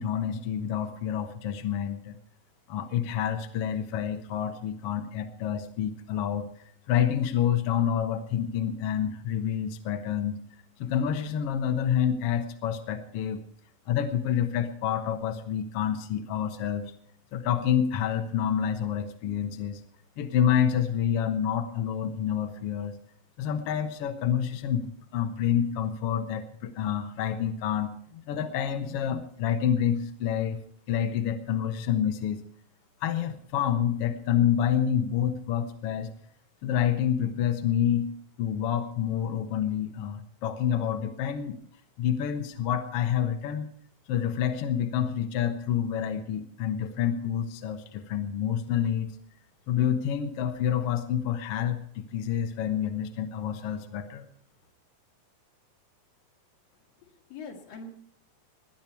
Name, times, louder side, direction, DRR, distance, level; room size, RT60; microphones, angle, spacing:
voice 1, 0.0-2.2 2.7-6.5 6.9-10.4 10.8-13.4 13.9-16.9 17.3-19.8 20.2-22.9 23.4-30.6 30.9-32.4 33.0-36.1 36.6-38.1 38.4-41.6 42.0-43.7 44.1-49.1 49.7-54.2, left 9 dB, 60° left, 6 dB, 1.6 m, -28 dB
voice 2, 56.7-57.9, left 3 dB, 80° left, 1 dB, 3.9 m, -44 dB
19.5 x 10.5 x 4.6 m, 0.63 s
omnidirectional pair, 4.0 m